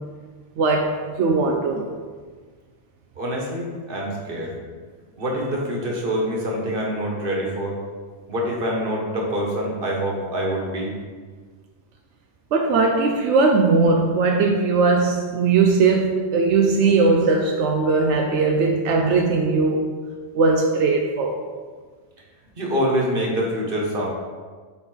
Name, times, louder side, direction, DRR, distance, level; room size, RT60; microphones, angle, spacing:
voice 1, 0.6-2.0 12.5-19.9 20.3-21.4, right 4 dB, 85° right, 3 dB, 0.9 m, -19 dB
voice 2, 3.2-4.6 5.2-7.8 8.3-10.9 22.6-24.1, equal, 50° right, -2 dB, 1.5 m, -25 dB
8.7 x 3.9 x 3.9 m, 1.5 s
omnidirectional pair, 1.2 m